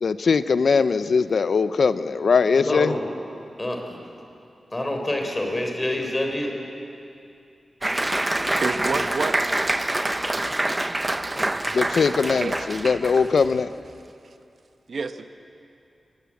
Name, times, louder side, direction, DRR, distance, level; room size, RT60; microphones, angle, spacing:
voice 1, 0.0-3.0 11.7-13.7, left 5 dB, 70° left, 13 dB, 0.7 m, -21 dB
voice 2, 2.6-3.1 3.6-4.0 4.7-6.5, left 1 dB, 20° left, 3 dB, 3.7 m, -27 dB
Applause, 7.8-13.5, right 1 dB, 15° right, 0.7 m, -26 dB
voice 3, 8.6-9.4 12.4-12.5 14.9-15.3, right 4 dB, 60° right, 8 dB, 1.1 m, -27 dB
22.0 x 20.0 x 8.5 m, 2.6 s
wide cardioid pair, 125°, 0 cm